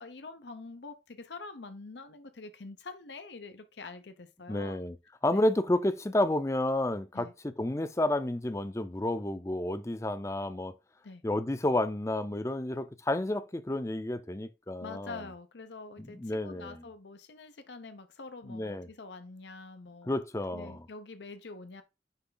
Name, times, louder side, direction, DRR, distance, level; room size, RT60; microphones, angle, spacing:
voice 1, 0.0-4.8 5.3-5.4 7.1-7.3 11.0-11.2 14.8-20.2 20.5-21.8, left 3 dB, 85° left, 0.8 m, -46 dB
voice 2, 4.5-5.0 5.2-10.7 11.2-15.2 16.0-16.8 18.5-18.9 20.1-20.8, left 1 dB, 15° left, 0.5 m, -31 dB
9.8 x 3.4 x 3.9 m
head